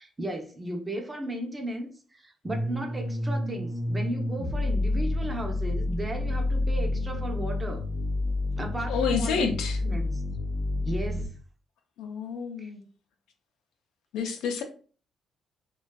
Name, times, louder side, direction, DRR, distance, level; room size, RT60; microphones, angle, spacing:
voice 1, 0.0-7.9 8.6-9.5 9.8-10.2 10.8-11.3 12.6-12.7, right 1 dB, 20° right, 0.6 m, -35 dB
sound 1, 2.4-11.3, left 2 dB, 20° left, 0.6 m, -29 dB
voice 2, 8.9-9.8 12.0-12.8 14.1-14.6, left 6 dB, 90° left, 0.4 m, -29 dB
2.5 x 2.2 x 2.2 m
cardioid pair, 90°, 0 cm